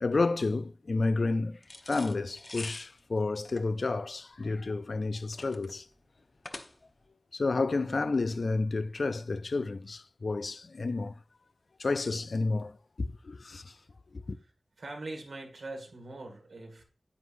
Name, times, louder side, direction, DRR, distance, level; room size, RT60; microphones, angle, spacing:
voice 1, 0.0-1.6 1.9-5.9 7.3-11.1 11.8-13.7 14.1-14.4, left 3 dB, 70° left, 0.4 m, -30 dB
sound 1, 1.6-7.1, left 2 dB, 50° left, 0.8 m, -46 dB
voice 2, 14.8-16.8, right 2 dB, 90° right, 1.9 m, -42 dB
9.5 x 8.0 x 2.6 m
cardioid pair, 40°, 0 cm